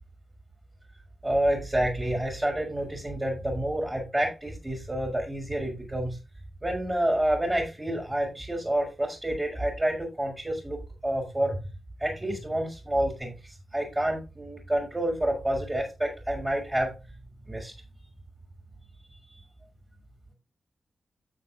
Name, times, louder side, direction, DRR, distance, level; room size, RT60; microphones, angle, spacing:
voice 1, 1.2-6.2 6.6-11.6 12.0-13.4 13.7-16.9 17.4-17.7, right 1 dB, 25° right, -4 dB, 4.8 m, -28 dB
14.0 x 7.6 x 2.5 m, 0.27 s
cardioid pair, 60°, 0 cm